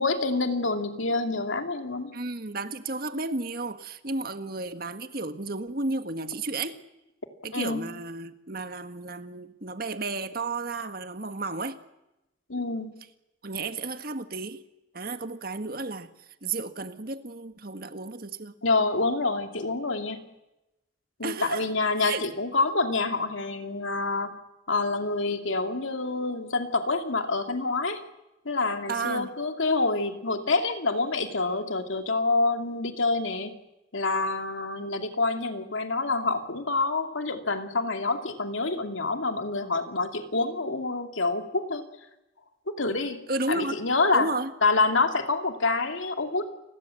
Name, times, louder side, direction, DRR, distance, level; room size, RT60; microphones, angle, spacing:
voice 1, 0.0-2.2 7.5-7.9 12.5-13.0 18.6-20.3 21.2-24.4 24.7-28.0 28.4-33.6 33.9-41.9 42.7-44.3 44.6-46.5, left 3 dB, 80° left, 2.7 m, -27 dB
voice 2, 2.1-6.8 7.4-11.8 13.4-14.6 14.9-16.1 16.4-18.6 21.2-21.7 22.0-22.3 28.9-29.3 43.3-43.8 44.1-44.5, right 3 dB, 50° right, 1.7 m, -33 dB
29.5 x 21.0 x 7.8 m
head